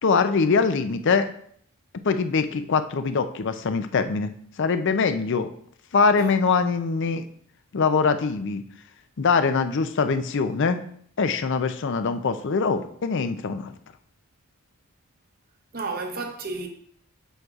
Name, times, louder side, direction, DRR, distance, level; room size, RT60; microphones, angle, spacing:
voice 1, 0.0-1.3 2.0-4.3 4.6-5.5 5.9-7.2 7.7-8.6 9.2-10.8 11.2-13.7, left 5 dB, 55° left, 0.5 m, -23 dB
voice 2, 15.7-16.7, right 3 dB, 45° right, 0.8 m, -32 dB
7.8 x 6.1 x 2.4 m
head